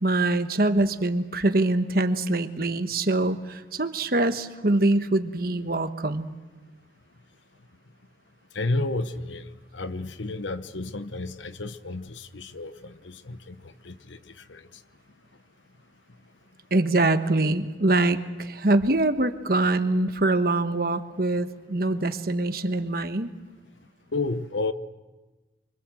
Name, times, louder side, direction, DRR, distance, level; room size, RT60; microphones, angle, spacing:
voice 1, 0.0-6.3 16.7-23.3, right 2 dB, 55° right, 9 dB, 1.3 m, -24 dB
voice 2, 8.5-9.5 9.7-13.6 13.8-14.2 14.5-14.6 24.1-24.7, left 2 dB, 90° left, 12 dB, 1.0 m, -31 dB
25.0 x 24.5 x 7.7 m, 1.2 s
head